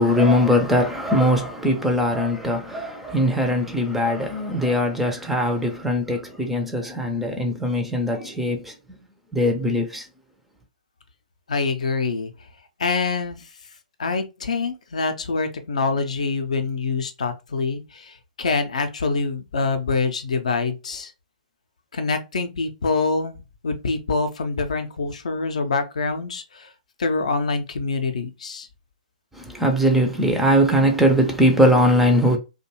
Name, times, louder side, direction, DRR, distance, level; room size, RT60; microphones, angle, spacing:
voice 1, 0.0-8.7 9.3-10.0 29.5-32.4, equal, 5° right, 0.4 m, -20 dB
voice 2, 11.5-12.3 12.8-13.4 14.0-21.1 21.9-23.4 23.6-26.7 27.0-28.7, left 4 dB, 60° left, 0.4 m, -25 dB
2.5 x 2.2 x 2.8 m
figure-of-eight pair, 120°, 4 cm